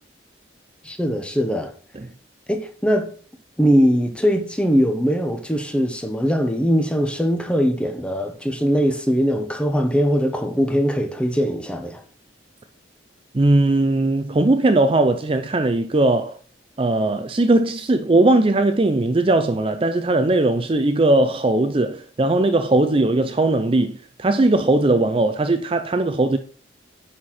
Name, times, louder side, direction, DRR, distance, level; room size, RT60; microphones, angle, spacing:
voice 1, 0.8-1.7 2.5-3.1 3.6-12.0, equal, 5° left, 1.0 m, -21 dB
voice 2, 13.3-16.4 16.8-26.4, right 2 dB, 30° right, 0.5 m, -19 dB
9.6 x 4.4 x 5.8 m
head